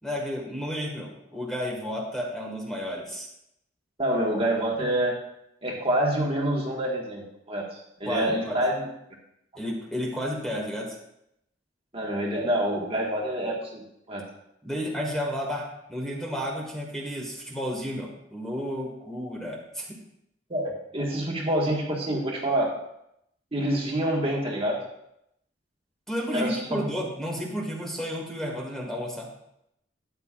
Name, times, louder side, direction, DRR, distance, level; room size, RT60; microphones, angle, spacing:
voice 1, 0.0-3.3 8.1-8.6 9.6-11.0 14.6-20.0 26.1-29.3, equal, 5° left, -1 dB, 1.8 m, -32 dB
voice 2, 4.0-5.1 5.6-7.6 8.0-8.8 11.9-13.8 14.1-14.2 20.5-22.7 23.5-24.8 26.3-26.6, right 1 dB, 30° right, -2 dB, 1.7 m, -26 dB
13.0 x 9.6 x 2.5 m, 0.79 s
head